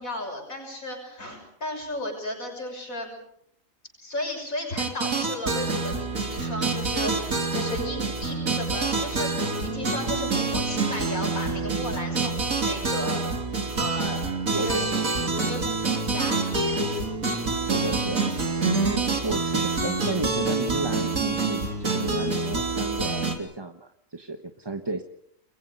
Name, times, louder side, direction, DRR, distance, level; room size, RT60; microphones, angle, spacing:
voice 1, 0.0-3.2 4.0-9.3 9.6-13.2 13.8-14.2 14.6-15.0 15.3-16.8, left 1 dB, 80° left, 2 dB, 6.9 m, -34 dB
sound 1, 4.8-23.4, right 3 dB, 85° right, 3.7 m, -27 dB
voice 2, 14.5-15.1 17.7-18.2 18.6-25.0, right 2 dB, 20° right, 7 dB, 1.2 m, -32 dB
29.5 x 22.0 x 5.4 m, 0.71 s
omnidirectional pair, 1.4 m